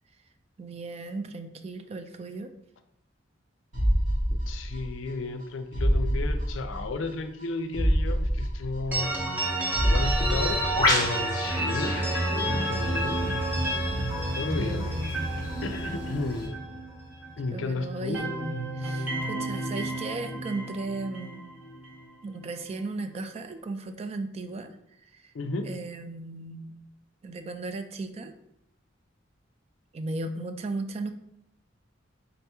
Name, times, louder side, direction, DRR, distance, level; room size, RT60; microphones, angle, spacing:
voice 1, 0.6-2.5 14.6-15.1 17.5-18.3 18.7-21.4 22.2-24.7 25.1-25.3 25.7-26.8 27.2-28.3 29.9-31.1, right 3 dB, 30° right, 7 dB, 0.3 m, -36 dB
sound 1, 3.7-5.1 5.4-5.5 5.7-7.1 7.4-7.5 7.7-9.4 9.7-11.1 11.4-11.5, equal, 80° right, 1.5 m, -26 dB
voice 2, 4.3-9.1 9.8-11.9 12.3-13.2 14.4-14.9 15.6-16.6 17.4-18.2 25.3-25.7, left 3 dB, 80° left, 9 dB, 0.4 m, -33 dB
sound 2, 8.9-17.6 17.9-22.0, right 1 dB, 10° right, 1.0 m, -30 dB
Bird, 10.0-16.5, left 2 dB, 20° left, 0.9 m, -33 dB
4.0 x 2.9 x 3.4 m, 0.78 s
head